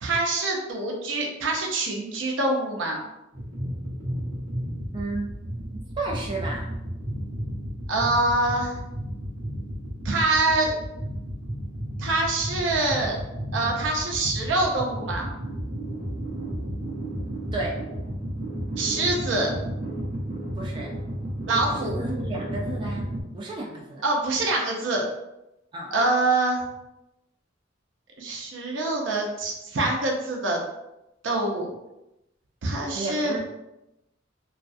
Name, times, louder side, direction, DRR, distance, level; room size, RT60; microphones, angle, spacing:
voice 1, 0.0-3.0 7.9-8.8 10.0-10.7 12.0-13.2 13.5-15.3 18.8-19.5 21.5-22.0 24.0-25.1 25.9-26.6 28.2-30.6 31.2-31.7 32.6-33.3, right 2 dB, 75° right, 0 dB, 0.6 m, -25 dB
sound 1, 3.3-23.2, equal, 40° right, 0.9 m, -33 dB
voice 2, 4.9-5.4 5.7-6.7 17.5-17.8 20.6-20.9 21.7-24.0 25.7-25.9 32.9-33.4, right 2 dB, 25° right, -3 dB, 0.3 m, -33 dB
2.4 x 2.2 x 2.5 m, 0.91 s
head